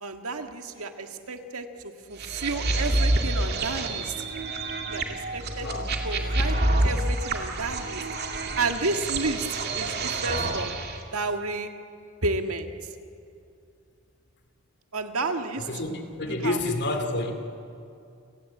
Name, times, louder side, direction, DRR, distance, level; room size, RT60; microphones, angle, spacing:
voice 1, 0.0-4.1 4.9-5.7 6.0-8.0 8.6-10.8 11.1-11.7 12.2-12.7 14.9-15.7 16.3-16.6, right 3 dB, 85° right, 6 dB, 1.8 m, -31 dB
sound 1, 2.2-11.0, right 2 dB, 50° right, 2.4 m, -28 dB
voice 2, 5.6-5.9 15.6-17.3, left 2 dB, 50° left, 6 dB, 2.7 m, -29 dB
30.0 x 17.5 x 8.4 m, 2.5 s
head